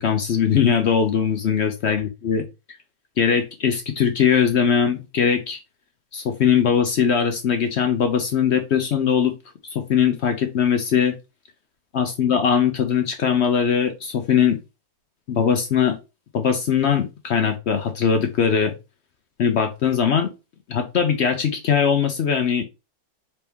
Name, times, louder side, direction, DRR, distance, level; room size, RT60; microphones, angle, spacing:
voice 1, 0.0-2.4 3.2-5.6 6.1-9.3 9.7-11.1 11.9-14.6 15.3-16.0 16.3-18.7 19.4-20.3 20.7-22.6, left 7 dB, 60° left, 6 dB, 0.7 m, -20 dB
4.3 x 2.9 x 3.5 m, 0.27 s
omnidirectional pair, 1.6 m